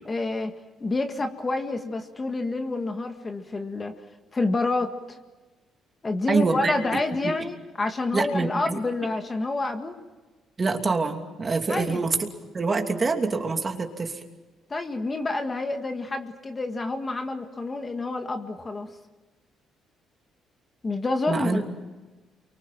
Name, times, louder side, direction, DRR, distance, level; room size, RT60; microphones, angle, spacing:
voice 1, 0.1-0.5 0.8-3.9 4.3-5.2 6.0-10.0 11.7-12.0 14.7-18.9 20.8-21.6, left 2 dB, 25° left, 6 dB, 1.8 m, -28 dB
voice 2, 6.3-7.3 8.1-8.8 10.6-12.3 12.5-14.2 21.3-21.6, right 4 dB, 30° right, 4 dB, 2.9 m, -26 dB
29.0 x 24.5 x 7.5 m, 1.2 s
cardioid pair, 115°, 0 cm